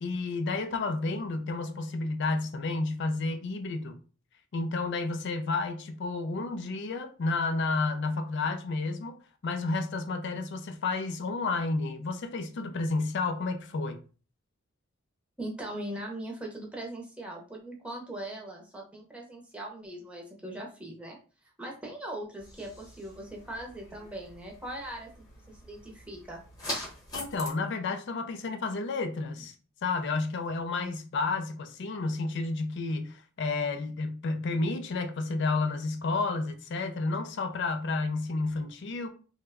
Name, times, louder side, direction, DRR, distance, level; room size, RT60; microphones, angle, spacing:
voice 1, 0.0-4.0 4.5-9.2 9.4-14.0 27.1-29.5 29.8-39.1, left 3 dB, 55° left, 0.4 m, -31 dB
voice 2, 15.4-21.2 21.6-26.4, right 1 dB, 5° right, 0.7 m, -40 dB
sound 1, 22.4-27.5, left 1 dB, 20° left, 1.0 m, -43 dB
3.0 x 2.2 x 3.4 m
head